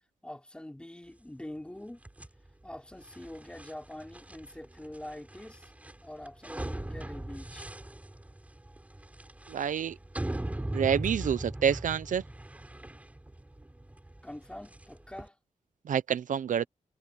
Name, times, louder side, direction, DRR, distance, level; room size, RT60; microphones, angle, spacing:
voice 1, 0.2-2.0 2.6-5.7 6.0-7.7 14.2-15.4, left 1 dB, 5° left, 3.9 m, -44 dB
sound 1, 2.0-15.3, right 1 dB, 10° right, 3.8 m, -40 dB
voice 2, 9.5-10.0 10.7-12.2 15.9-16.7, right 8 dB, 75° right, 0.6 m, -28 dB
wide cardioid pair, 180°, 13 cm